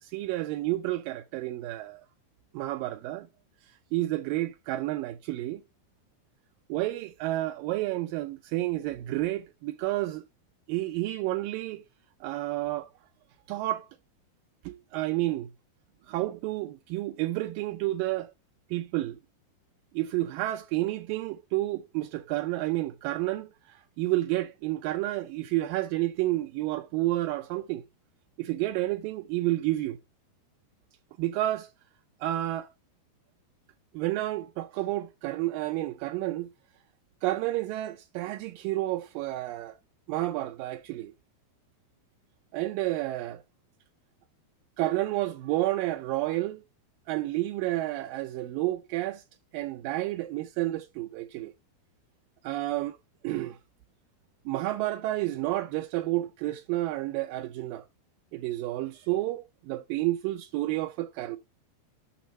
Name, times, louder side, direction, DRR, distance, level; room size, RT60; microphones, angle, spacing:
voice 1, 0.1-2.0 2.5-3.3 3.9-5.6 6.7-10.2 10.7-11.8 12.2-12.9 13.5-13.9 14.7-15.5 16.1-18.3 18.7-19.2 19.9-23.5 24.0-27.8 28.4-30.0 31.2-31.7 32.2-32.7 33.9-36.5 37.2-39.8 40.1-41.1 42.5-43.4 44.8-46.6 47.1-49.2 49.5-51.5 52.4-53.0 53.2-53.6 54.5-57.8 58.3-61.4, right 16 dB, 90° right, 1.9 m, -30 dB
7.0 x 6.2 x 5.3 m
omnidirectional pair, 4.6 m